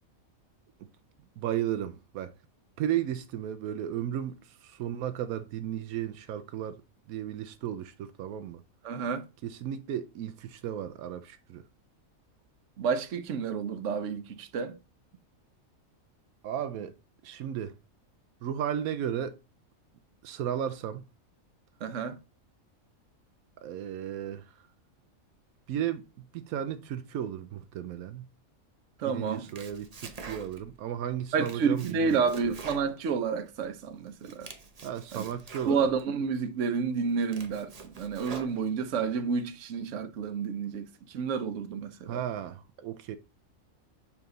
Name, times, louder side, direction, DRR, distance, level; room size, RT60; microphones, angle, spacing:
voice 1, 1.4-2.3 2.8-6.8 7.1-8.6 9.4-11.6 16.4-16.9 17.2-17.8 18.4-19.4 20.2-21.0 23.6-24.5 25.7-26.0 26.3-28.3 29.0-32.5 34.8-35.9 42.1-43.2, right 10 dB, 85° right, 1.0 m, -34 dB
voice 2, 8.8-9.3 12.8-14.8 21.8-22.2 29.0-29.5 31.3-34.5 35.1-35.2 35.7-42.2, right 5 dB, 65° right, 1.1 m, -30 dB
Domestic sounds home sounds, 29.3-30.8 31.2-33.7 34.1-36.0 36.6-36.7 37.1-39.0, right 4 dB, 35° right, 0.7 m, -45 dB
7.1 x 3.6 x 3.8 m
omnidirectional pair, 1.4 m